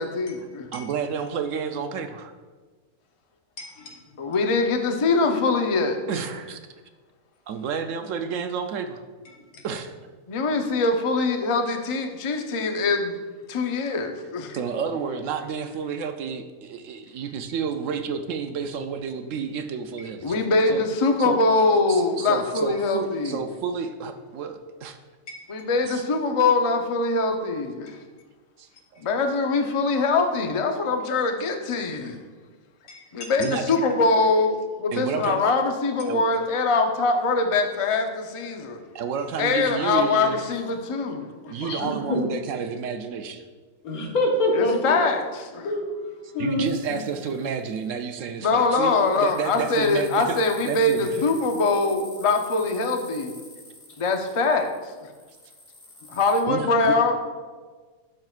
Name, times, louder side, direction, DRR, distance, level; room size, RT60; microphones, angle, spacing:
voice 1, 0.0-0.7 4.2-6.0 10.3-13.2 13.5-14.6 20.2-23.4 25.5-28.0 29.0-32.2 33.1-38.8 39.4-41.6 44.5-45.7 48.4-53.3 54.0-54.7 55.0-55.1 56.1-57.2, left 3 dB, 40° left, 4 dB, 0.4 m, -23 dB
voice 2, 0.7-2.3 6.1-6.6 7.5-9.0 9.6-9.9 14.5-20.8 21.2-21.4 21.9-25.0 25.8-26.0 28.6-29.0 33.4-33.6 34.9-35.4 36.1-36.3 38.9-40.5 41.5-43.5 46.4-51.2 56.5-56.9, right 6 dB, 70° right, 7 dB, 0.9 m, -30 dB
voice 3, 3.6-3.9 9.5-9.6 32.9-33.3 41.6-42.2 43.8-45.0 45.6-46.0 46.3-46.6, left 1 dB, 85° left, 0 dB, 1.7 m, -26 dB
sound 1, 46.6-47.8 48.8-56.4, left 1 dB, 25° left, 1.2 m, -47 dB
11.5 x 6.5 x 2.4 m, 1.4 s
omnidirectional pair, 1.5 m